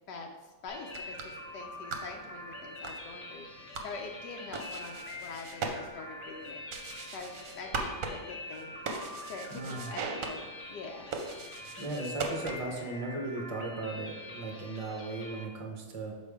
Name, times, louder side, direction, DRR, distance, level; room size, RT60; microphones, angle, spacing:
voice 1, 0.1-3.5 3.8-4.9 5.2-6.6 7.1-8.7 9.3-10.4 10.7-11.1, left 4 dB, 85° left, 2 dB, 1.2 m, -44 dB
sound 1, 0.7-15.5, left 2 dB, 45° left, 0.7 m, -45 dB
sound 2, 0.8-12.9, right 4 dB, 60° right, 1.0 m, -41 dB
voice 2, 9.5-9.9 11.8-16.1, right 2 dB, 40° right, 1 dB, 0.5 m, -37 dB
6.7 x 4.3 x 3.5 m, 1.2 s
omnidirectional pair, 1.8 m